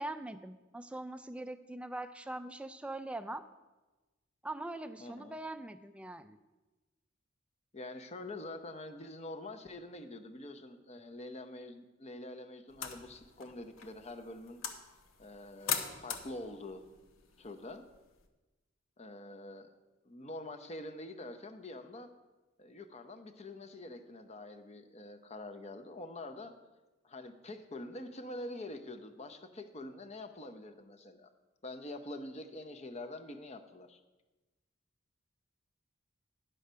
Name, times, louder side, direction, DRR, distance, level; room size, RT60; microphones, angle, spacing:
voice 1, 0.0-3.4 4.4-6.4, right 2 dB, 5° right, 10 dB, 0.3 m, -42 dB
voice 2, 5.0-5.4 7.7-14.6 15.2-16.8 17.4-17.9 19.0-19.7 20.0-22.1 22.6-26.5 27.0-31.3 31.6-34.0, left 1 dB, 30° left, 7 dB, 0.7 m, -45 dB
sound 1, 12.7-18.3, left 7 dB, 85° left, 1.0 m, -42 dB
10.5 x 6.6 x 5.5 m, 1.1 s
head